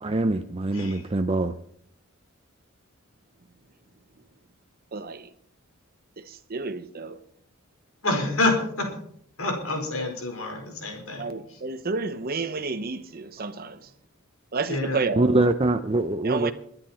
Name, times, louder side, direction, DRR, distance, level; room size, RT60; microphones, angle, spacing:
voice 1, 0.0-1.6 15.2-16.5, right 2 dB, 30° right, 0.6 m, -23 dB
voice 2, 0.7-1.1 8.0-8.9 9.4-11.2 14.7-15.0, left 2 dB, 80° left, 4.9 m, -27 dB
voice 3, 4.9-5.3 6.2-7.2 11.2-13.9 14.5-15.3 16.2-16.5, right 4 dB, 45° right, 1.0 m, -31 dB
23.0 x 9.9 x 4.4 m
head